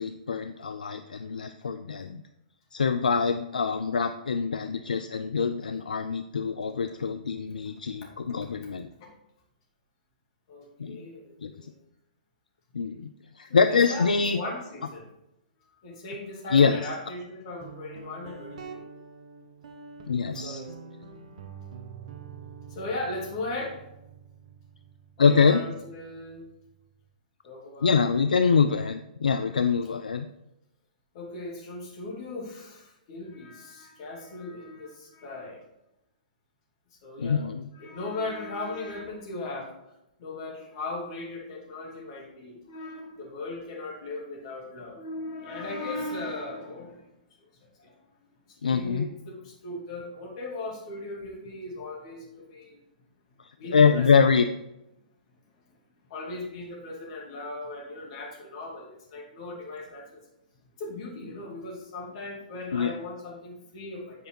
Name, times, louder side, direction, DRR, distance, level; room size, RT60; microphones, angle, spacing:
voice 1, 0.0-2.2 2.7-8.9 10.8-11.0 11.4-11.5 12.7-13.1 13.4-14.4 16.5-16.9 20.1-20.6 25.2-25.6 27.8-30.3 37.2-37.6 48.6-49.1 53.7-54.4 62.7-62.9, left 5 dB, 70° left, 8 dB, 0.4 m, -24 dB
voice 2, 8.0-8.4 9.0-9.1 10.5-11.8 13.5-15.1 15.8-18.8 20.3-20.7 21.3-21.5 22.7-23.8 25.2-26.4 27.4-28.0 29.3-29.5 31.1-35.6 37.0-37.5 37.7-39.7 40.2-47.0 47.4-47.9 48.5-52.8 53.6-54.1 56.1-60.2 60.8-64.3, left 2 dB, 45° left, -2 dB, 2.6 m, -38 dB
Guitar, 17.6-27.1, right 6 dB, 50° right, 0.9 m, -46 dB
8.4 x 4.9 x 4.5 m, 0.90 s
figure-of-eight pair, 115°, 5 cm